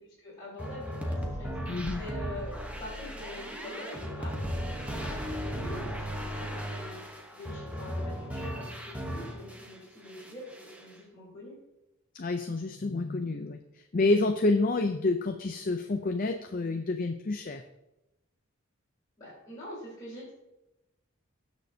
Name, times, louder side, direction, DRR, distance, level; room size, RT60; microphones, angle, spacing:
voice 1, 0.2-11.5 19.2-20.3, left 1 dB, 20° left, -10 dB, 3.5 m, -45 dB
sound 1, 0.6-9.7 10.1-10.9, equal, 5° right, 1.0 m, -36 dB
voice 2, 1.7-2.0 12.1-13.6 13.9-17.6, left 2 dB, 40° left, 6 dB, 0.5 m, -28 dB
18.5 x 6.3 x 2.8 m, 0.94 s
head